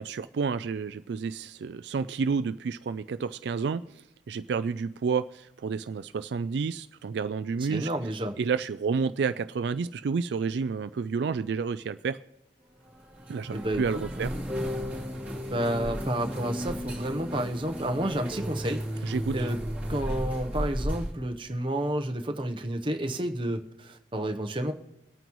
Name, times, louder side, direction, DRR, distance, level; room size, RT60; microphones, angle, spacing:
voice 1, 0.0-7.9 8.4-12.2 13.3-14.4 19.0-19.5, right 5 dB, 70° right, 12 dB, 0.3 m, -30 dB
voice 2, 7.7-8.4 13.5-14.3 15.5-19.6 19.9-24.7, right 1 dB, 30° right, 5 dB, 0.9 m, -31 dB
sound 1, 12.9-21.1, equal, 10° right, 2.7 m, -34 dB
23.0 x 9.1 x 3.1 m, 0.85 s
head